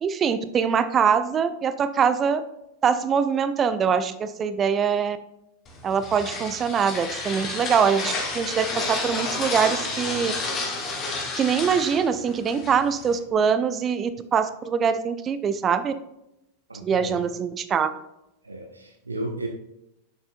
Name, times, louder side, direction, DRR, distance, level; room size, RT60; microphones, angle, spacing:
voice 1, 0.0-2.4 2.8-5.2 5.8-10.3 11.4-15.9 16.8-17.9, right 7 dB, 25° right, 12 dB, 0.4 m, -23 dB
sound 1, 5.7-13.2, left 3 dB, 30° left, 1.4 m, -31 dB
voice 2, 16.7-17.3 18.4-19.5, right 1 dB, 80° right, 3 dB, 0.6 m, -34 dB
6.7 x 6.7 x 2.6 m, 0.86 s
figure-of-eight pair, 90°, 0 cm